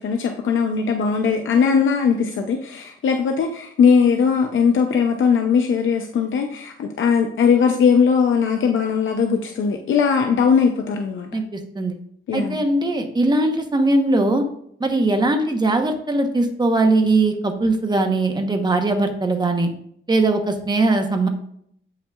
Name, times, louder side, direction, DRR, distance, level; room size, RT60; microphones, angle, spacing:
voice 1, 0.0-11.3 12.3-12.6, left 6 dB, 70° left, 4 dB, 0.6 m, -19 dB
voice 2, 11.3-11.9 12.3-14.4 14.8-19.7 20.1-21.3, right 2 dB, 20° right, 5 dB, 0.9 m, -20 dB
8.2 x 5.7 x 2.3 m, 0.70 s
wide cardioid pair, 120°, 21 cm